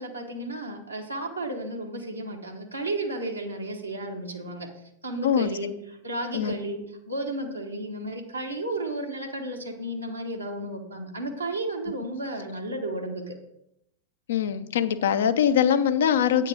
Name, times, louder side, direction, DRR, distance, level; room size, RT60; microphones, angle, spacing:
voice 1, 0.0-4.7 5.0-5.7 6.0-13.4, right 1 dB, 80° right, 0 dB, 1.1 m, -33 dB
voice 2, 14.3-16.5, left 8 dB, 60° left, 11 dB, 0.5 m, -22 dB
8.6 x 4.5 x 6.1 m, 0.81 s
figure-of-eight pair, 90°, 0 cm